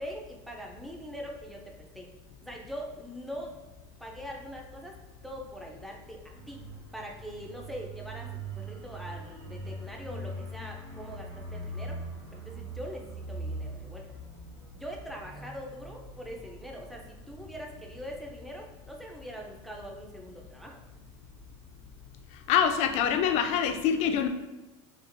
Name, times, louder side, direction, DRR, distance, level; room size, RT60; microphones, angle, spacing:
voice 1, 0.0-2.1 2.4-3.6 4.0-5.0 5.2-6.6 6.9-12.0 12.3-14.1 14.7-20.8, equal, ahead, -1 dB, 0.5 m, -42 dB
sound 1, 6.3-18.7 19.0-19.2, right 2 dB, 85° right, 1.0 m, -42 dB
voice 2, 22.5-24.3, left 8 dB, 55° left, 7 dB, 0.4 m, -25 dB
4.3 x 2.4 x 2.6 m, 1.1 s
supercardioid pair, 120°, 14 cm